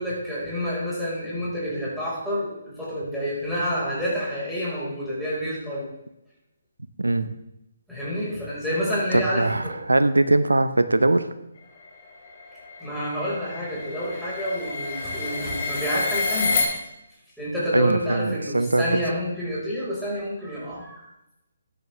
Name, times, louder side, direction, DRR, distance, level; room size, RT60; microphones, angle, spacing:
voice 1, 0.0-5.9 7.9-9.8 12.8-16.6 17.4-21.1, equal, ahead, -9 dB, 4.9 m, -29 dB
voice 2, 7.0-7.3 9.1-11.3 17.7-18.9, right 2 dB, 90° right, 11 dB, 0.9 m, -21 dB
sound 1, 11.9-16.6, left 4 dB, 45° left, 3.3 m, -29 dB
13.5 x 9.7 x 3.4 m, 0.89 s
figure-of-eight pair, 145°, 0 cm